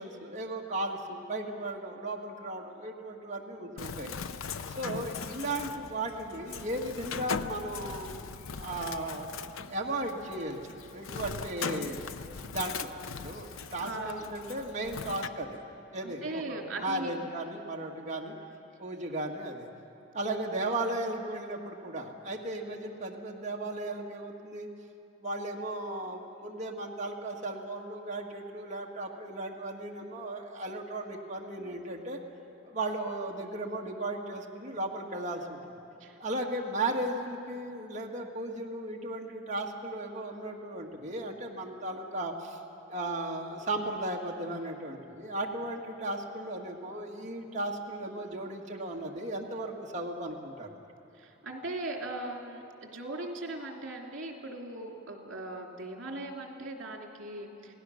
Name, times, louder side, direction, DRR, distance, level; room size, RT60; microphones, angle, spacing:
voice 1, 0.0-4.1 4.8-8.1 8.6-9.3 9.7-12.0 12.5-15.6 15.9-18.3 18.8-19.7 20.1-24.7 25.2-32.2 32.6-35.6 36.2-42.6 42.9-50.7, right 1 dB, 35° right, -1 dB, 1.6 m, -36 dB
Bird, 3.8-15.3, left 5 dB, 85° left, 0.7 m, -40 dB
voice 2, 13.8-14.3 16.0-17.2 36.0-36.2 51.2-57.7, right 2 dB, 65° right, 1 dB, 2.9 m, -39 dB
28.5 x 18.0 x 6.4 m, 2.8 s
head